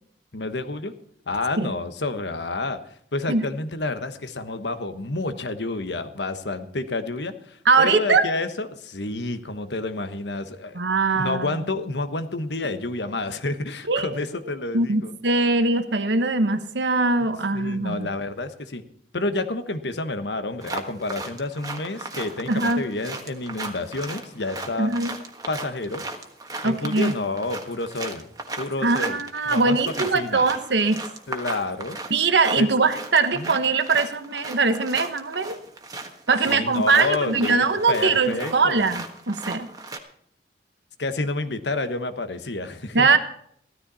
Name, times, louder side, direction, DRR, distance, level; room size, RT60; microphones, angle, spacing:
voice 1, 0.3-0.9 1.3-2.8 3.1-10.8 11.2-15.1 17.5-18.8 19.1-24.9 25.5-26.0 26.6-28.2 28.6-29.2 29.4-30.4 31.3-32.0 32.6-32.7 33.3-33.6 36.5-38.8 41.0-43.1, left 2 dB, 80° left, 10 dB, 1.2 m, -29 dB
voice 2, 7.6-8.2 10.7-11.6 13.9-14.2 14.7-18.1 22.5-22.8 24.8-25.2 26.6-27.1 28.8-31.0 32.1-35.6 36.3-39.7 42.9-43.2, right 3 dB, 85° right, 10 dB, 1.2 m, -21 dB
sound 1, 20.6-40.0, right 2 dB, 20° right, 1.4 m, -36 dB
15.5 x 13.0 x 4.2 m, 0.65 s
head